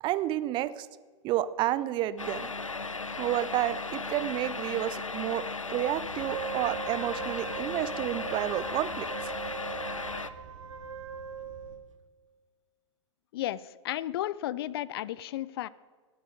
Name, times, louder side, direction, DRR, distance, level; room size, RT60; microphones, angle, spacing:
voice 1, 0.0-0.9 1.2-2.5 3.2-9.3, right 13 dB, 30° right, 16 dB, 0.5 m, -30 dB
sound 1, 2.2-10.3, left 3 dB, 90° left, 0.6 m, -36 dB
sound 2, 5.9-11.8, right 5 dB, 50° right, 2.6 m, -52 dB
Wind instrument woodwind instrument, 6.2-11.8, right 6 dB, 75° right, 0.8 m, -40 dB
voice 2, 13.3-15.7, left 13 dB, 50° left, 21 dB, 0.4 m, -33 dB
18.0 x 8.8 x 5.1 m, 1.5 s
figure-of-eight pair, 100°, 16 cm